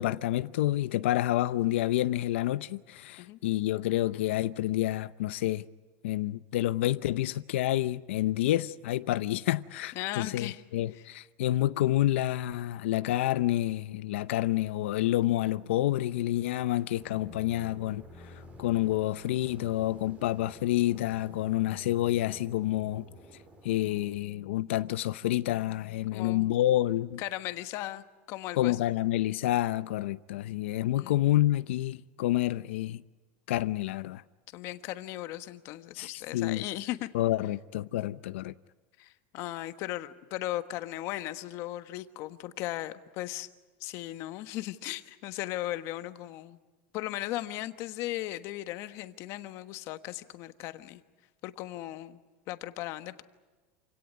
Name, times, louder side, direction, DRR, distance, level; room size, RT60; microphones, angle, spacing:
voice 1, 0.0-5.6 6.0-18.0 18.6-23.0 23.6-27.2 28.6-33.0 33.5-34.2 36.0-36.6 37.1-38.5, left 14 dB, 90° left, 0.7 m, -28 dB
voice 2, 9.9-10.6 10.9-11.1 26.1-26.5 27.2-28.8 30.9-31.3 34.5-37.1 39.0-43.5 43.8-46.6 46.9-51.0 51.4-52.2 52.5-53.2, left 15 dB, 45° left, 1.3 m, -37 dB
sound 1, 15.0-24.1, equal, 20° right, 4.3 m, -52 dB
27.5 x 17.5 x 9.7 m
supercardioid pair, 155°, 6 cm